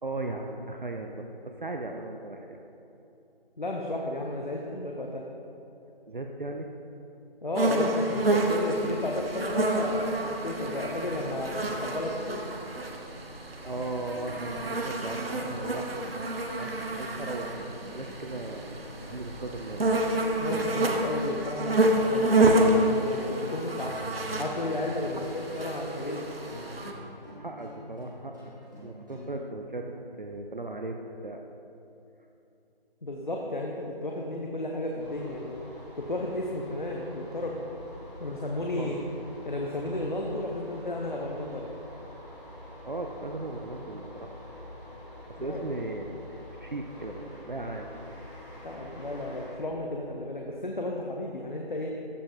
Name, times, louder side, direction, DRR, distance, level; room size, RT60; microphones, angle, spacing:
voice 1, 0.0-2.6 6.1-6.7 13.6-15.9 16.5-16.7 17.0-18.6 19.1-19.9 25.0-25.2 27.4-28.4 28.8-31.4 38.8-39.0 42.8-44.3 45.3-47.9, right 2 dB, 55° right, 3 dB, 0.5 m, -37 dB
voice 2, 3.6-5.2 7.4-10.2 10.4-12.4 20.4-22.3 22.6-23.9 24.4-26.3 33.0-35.6 36.0-37.6 38.2-39.0 39.4-41.7 45.5-45.6 48.6-51.9, left 1 dB, 55° left, 0 dB, 0.7 m, -33 dB
sound 1, 7.5-26.9, right 1 dB, 70° right, 1.0 m, -29 dB
sound 2, 13.5-29.3, left 1 dB, 20° right, 1.6 m, -46 dB
sound 3, 34.9-49.5, left 1 dB, 10° left, 1.4 m, -46 dB
13.0 x 5.4 x 2.9 m, 2.8 s
figure-of-eight pair, 180°, 30 cm